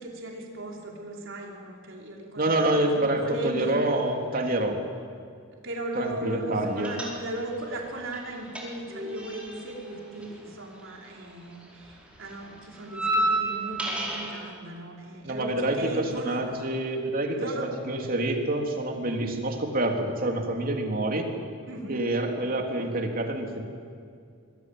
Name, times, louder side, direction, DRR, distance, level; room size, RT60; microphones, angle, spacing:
voice 1, 0.0-3.8 5.6-16.4 17.3-17.7 21.7-22.0, right 1 dB, 65° right, -1 dB, 5.0 m, -37 dB
voice 2, 2.4-4.8 5.9-6.9 15.2-21.3 21.9-23.6, right 1 dB, 45° right, 2 dB, 3.3 m, -27 dB
sound 1, 6.8-7.6 7.9-11.3 11.5-14.4, right 1 dB, 5° right, 4.8 m, -31 dB
25.5 x 21.5 x 9.3 m, 2.3 s
head